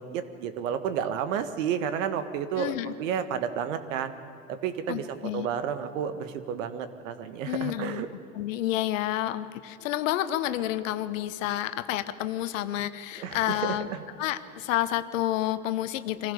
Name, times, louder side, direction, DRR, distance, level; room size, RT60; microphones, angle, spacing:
voice 1, 0.0-4.1 4.5-5.1 5.3-8.1 13.2-14.0, right 8 dB, 70° right, 10 dB, 1.7 m, -31 dB
voice 2, 2.6-2.9 4.9-5.5 7.5-8.0 8.3-13.9 14.2-16.3, left 13 dB, 70° left, 12 dB, 1.2 m, -29 dB
25.0 x 15.5 x 6.9 m, 2.8 s
hypercardioid pair, 100°, 40 cm